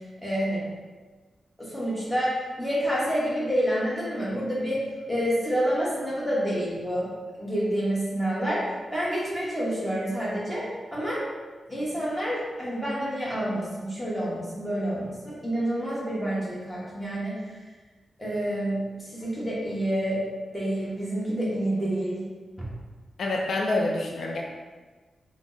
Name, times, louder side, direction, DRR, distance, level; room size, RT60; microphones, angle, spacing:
voice 1, 0.2-0.6 1.6-4.8 5.1-7.1 7.4-11.2 11.7-17.4 18.2-20.2 20.5-22.2 22.6-22.7, equal, 5° left, -7 dB, 1.1 m, -28 dB
voice 2, 23.2-24.4, left 2 dB, 70° left, 0 dB, 0.3 m, -27 dB
3.4 x 2.0 x 3.8 m, 1.4 s
wide cardioid pair, 95°, 0 cm